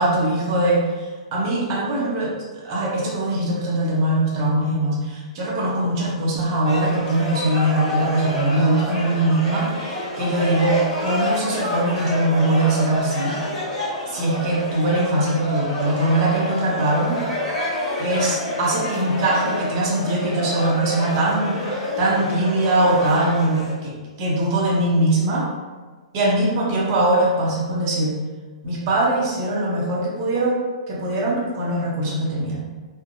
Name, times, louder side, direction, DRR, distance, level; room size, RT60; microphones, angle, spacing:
voice 1, 0.0-2.3 2.6-13.4 14.1-17.2 18.0-25.5 26.1-28.2 28.6-32.6, right 1 dB, 45° right, -4 dB, 0.8 m, -21 dB
sound 1, 6.6-23.7, left 1 dB, 10° left, 1.4 m, -28 dB
2.6 x 2.1 x 2.6 m, 1.4 s
hypercardioid pair, 120°, 3 cm